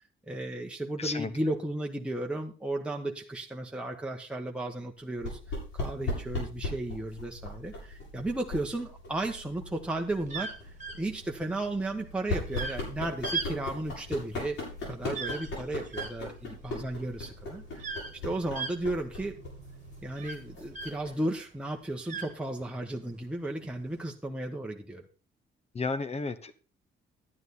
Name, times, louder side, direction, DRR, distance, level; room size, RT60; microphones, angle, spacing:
voice 1, 0.3-5.4 5.7-10.5 10.9-14.6 14.8-17.9 18.2-19.4 20.0-25.1, right 1 dB, 5° right, 0 dB, 1.2 m, -34 dB
voice 2, 1.0-1.3 25.7-26.5, left 4 dB, 30° left, 13 dB, 1.1 m, -32 dB
sound 1, 5.2-21.3, left 2 dB, 80° left, 7.2 m, -39 dB
sound 2, 10.3-21.2 21.6-22.9 23.6-24.0, right 4 dB, 40° right, 1.7 m, -39 dB
11.0 x 9.3 x 4.2 m, 0.36 s
cardioid pair, 90°, 20 cm